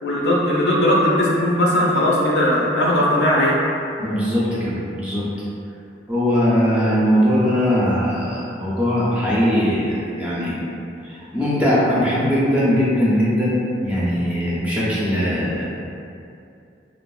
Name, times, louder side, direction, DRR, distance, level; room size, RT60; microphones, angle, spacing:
voice 1, 0.0-3.6, left 1 dB, 70° left, -5 dB, 0.5 m, -18 dB
voice 2, 4.0-5.3 6.1-10.6 11.0-15.6, equal, 10° right, -8 dB, 0.4 m, -20 dB
3.0 x 2.0 x 2.3 m, 2.6 s
head